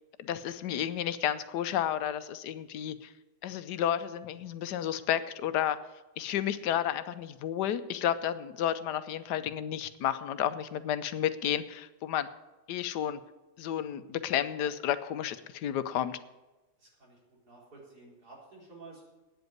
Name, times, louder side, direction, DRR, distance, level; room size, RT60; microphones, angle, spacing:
voice 1, 0.2-3.1 3.4-5.8 6.2-12.3 12.7-13.2 13.6-16.2, left 10 dB, 85° left, 12 dB, 1.3 m, -31 dB
voice 2, 16.8-17.2 17.4-19.0, right 3 dB, 75° right, -4 dB, 4.6 m, -52 dB
9.2 x 8.0 x 9.4 m, 1.1 s
omnidirectional pair, 1.7 m